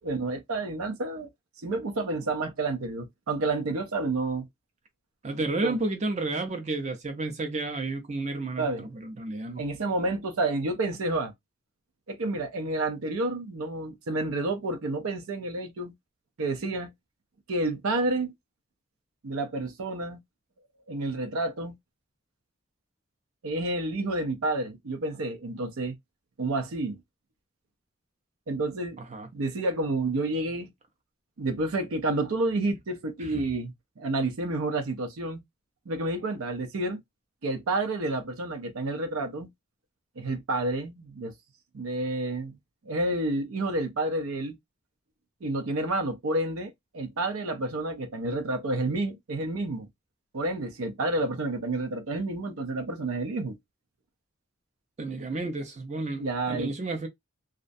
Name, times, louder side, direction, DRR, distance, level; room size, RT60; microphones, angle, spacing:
voice 1, 0.0-1.3 1.6-4.5 5.6-5.8 8.6-8.9 9.6-11.3 12.1-15.9 16.4-16.9 17.5-18.3 19.2-20.2 20.9-21.7 23.4-26.0 26.4-27.0 28.5-29.0 29.3-30.7 31.4-35.4 35.9-37.0 37.4-39.5 40.2-41.3 41.7-42.6 42.9-44.6 45.4-49.9 50.3-53.6 56.1-56.7, right 2 dB, 80° right, 0.6 m, -29 dB
voice 2, 5.2-9.6 29.1-29.3 33.2-33.4 55.0-57.1, right 2 dB, 30° right, 0.4 m, -32 dB
2.4 x 2.1 x 2.5 m
head